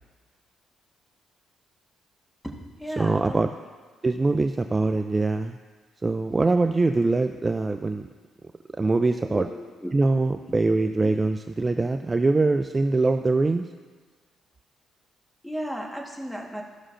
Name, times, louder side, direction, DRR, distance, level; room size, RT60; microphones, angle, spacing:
voice 1, 2.4-3.4 9.2-9.4 9.8-9.9 10.4-10.6 15.4-16.6, equal, 5° left, 1 dB, 1.3 m, -34 dB
voice 2, 3.0-3.5 4.0-5.6 6.0-8.1 8.8-9.5 9.9-13.7, right 3 dB, 25° right, 8 dB, 0.3 m, -23 dB
14.5 x 6.3 x 2.5 m, 1.5 s
cardioid pair, 90°, 0 cm